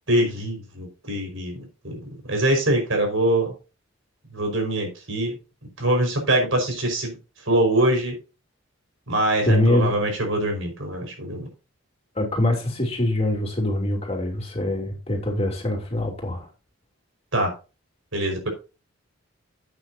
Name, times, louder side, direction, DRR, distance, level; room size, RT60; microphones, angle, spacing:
voice 1, 0.1-3.5 4.3-5.3 5.8-7.2 7.5-8.2 9.1-11.5 17.3-17.5 18.1-18.5, right 1 dB, 70° right, 3 dB, 5.1 m, -23 dB
voice 2, 9.4-9.9 12.1-16.5, left 1 dB, 30° left, 1 dB, 3.1 m, -23 dB
12.5 x 8.6 x 2.8 m, 0.30 s
head